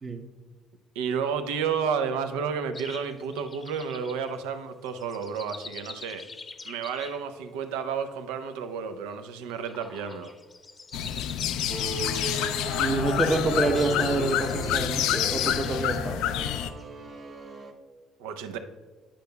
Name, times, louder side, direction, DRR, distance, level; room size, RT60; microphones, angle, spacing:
voice 1, 1.0-6.2 6.6-10.3 18.2-18.6, right 6 dB, 90° right, 8 dB, 0.5 m, -31 dB
sound 1, 2.7-4.4 4.9-7.2 9.5-12.7 13.5-15.8 16.6-16.8, left 3 dB, 30° left, 0.7 m, -45 dB
sound 2, 10.9-16.7, left 10 dB, 80° left, 0.3 m, -28 dB
sound 3, 11.7-17.7, right 2 dB, 55° right, 1.1 m, -38 dB
voice 2, 12.8-16.2, right 3 dB, 30° right, 6 dB, 0.8 m, -27 dB
10.0 x 5.3 x 2.3 m, 1.4 s
supercardioid pair, 70°, 0 cm